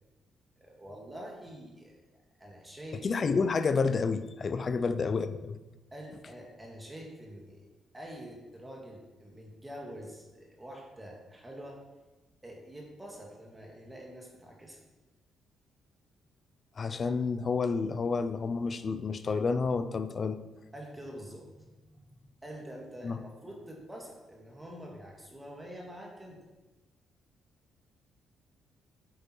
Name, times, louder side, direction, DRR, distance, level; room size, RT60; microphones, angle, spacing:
voice 1, 0.6-2.0 2.4-3.0 4.8-4.9 5.9-7.6 7.9-11.8 12.4-14.8 20.7-26.4, equal, 15° right, -1 dB, 2.2 m, -46 dB
voice 2, 3.0-5.6 16.8-20.4 23.0-23.2, left 4 dB, 40° left, 11 dB, 0.7 m, -29 dB
8.7 x 8.3 x 4.6 m, 1.1 s
cardioid pair, 90°, 0 cm